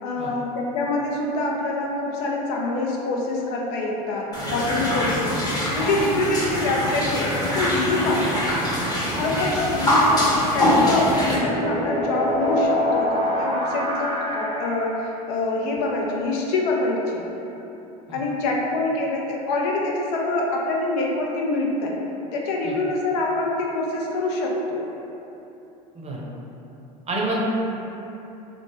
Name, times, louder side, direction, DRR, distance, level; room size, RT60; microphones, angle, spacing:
voice 1, 0.0-5.3 5.8-8.5 9.1-17.3 18.1-22.0 22.3-24.8, left 2 dB, 65° left, -1 dB, 0.5 m, -25 dB
sound 1, 4.3-11.4, left 1 dB, 20° left, 0.9 m, -23 dB
sound 2, 10.9-15.1, left 1 dB, 80° right, 0.8 m, -26 dB
voice 2, 27.1-27.4, right 2 dB, 30° right, -4 dB, 0.7 m, -28 dB
3.2 x 2.0 x 3.1 m, 3.0 s
hypercardioid pair, 75°, 21 cm